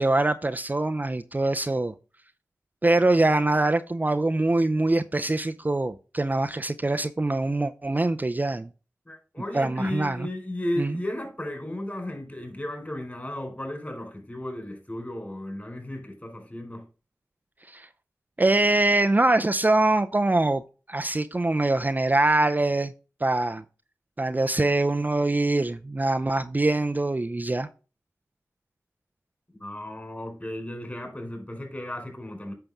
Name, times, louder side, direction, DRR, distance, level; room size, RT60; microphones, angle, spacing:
voice 1, 0.0-1.9 2.8-8.7 9.5-10.3 10.8-10.9 17.7-17.9 18.4-20.6 20.9-22.9 23.2-23.6 24.2-27.7, right 2 dB, 30° right, 0.5 m, -23 dB
voice 2, 9.1-16.9 29.6-32.5, left 1 dB, 25° left, 4.4 m, -34 dB
8.9 x 5.8 x 3.6 m
cardioid pair, 40°, 6 cm